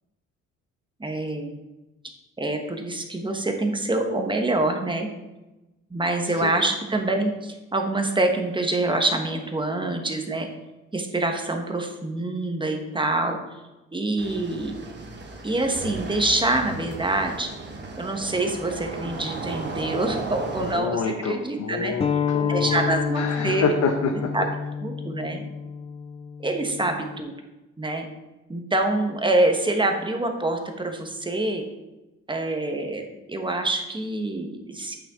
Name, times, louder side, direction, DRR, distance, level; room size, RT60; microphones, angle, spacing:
voice 1, 1.0-1.6 2.4-5.1 5.9-10.5 10.9-13.4 13.9-14.8 15.4-17.5 18.0-21.9 22.5-23.6 24.3-24.5 24.8-25.4 26.4-27.3 27.8-28.1 28.5-31.6 32.3-33.0 33.3-35.0, right 2 dB, 15° right, 4 dB, 1.3 m, -26 dB
sound 1, 14.2-20.8, right 3 dB, 35° right, 1.3 m, -35 dB
voice 2, 20.6-22.8 23.1-24.1, left 5 dB, 65° left, 4 dB, 0.8 m, -27 dB
sound 2, 22.0-27.2, left 6 dB, 20° left, 0.3 m, -28 dB
8.6 x 6.0 x 3.7 m, 1.0 s
cardioid pair, 90°, 30 cm